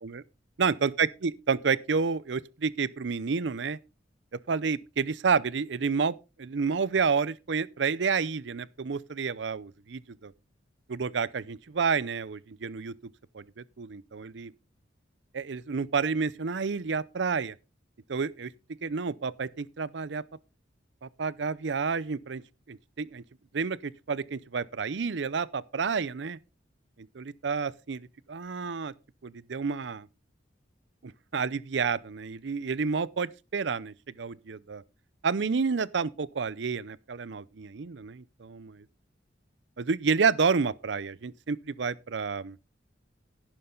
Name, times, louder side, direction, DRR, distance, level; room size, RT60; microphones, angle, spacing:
voice 1, 0.6-3.8 4.5-10.3 10.9-12.9 13.3-14.5 15.3-17.5 18.1-18.5 18.8-20.2 21.0-22.4 22.7-23.2 23.5-26.4 27.1-28.0 28.3-28.9 29.2-30.1 31.0-34.8 35.2-38.8 39.8-42.6, right 5 dB, 65° right, 0.6 m, -30 dB
11.0 x 10.0 x 3.8 m
head